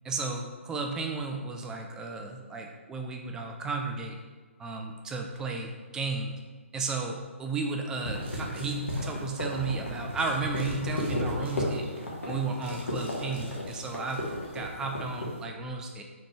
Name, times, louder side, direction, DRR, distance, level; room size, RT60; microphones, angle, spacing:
voice 1, 0.0-4.2 4.6-6.3 6.7-11.9 12.3-14.2 14.5-16.0, right 3 dB, 10° right, 2 dB, 0.3 m, -33 dB
sound 1, 7.9-15.4, left 1 dB, 70° left, 1.2 m, -34 dB
sound 2, 8.2-9.8 10.2-14.9, right 1 dB, 50° right, 1.1 m, -50 dB
3.9 x 3.4 x 3.1 m, 1.4 s
figure-of-eight pair, 135°, 7 cm